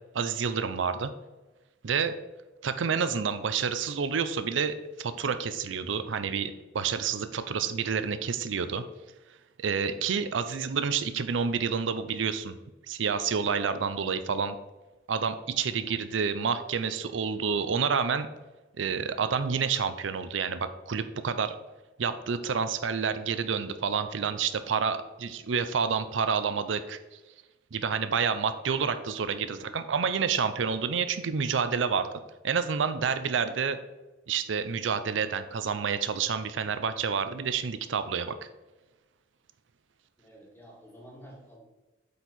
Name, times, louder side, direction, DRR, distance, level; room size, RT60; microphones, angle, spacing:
voice 1, 0.1-1.1 1.8-2.1 2.6-8.8 9.6-12.6 12.9-14.5 15.1-18.3 18.8-21.5 22.0-27.0 27.7-32.1 32.4-33.8 34.3-38.3, right 6 dB, 90° right, 11 dB, 0.5 m, -29 dB
voice 2, 15.7-16.0 29.4-29.8 40.2-41.6, equal, 10° left, -3 dB, 2.2 m, -51 dB
8.2 x 4.5 x 4.2 m, 1.1 s
head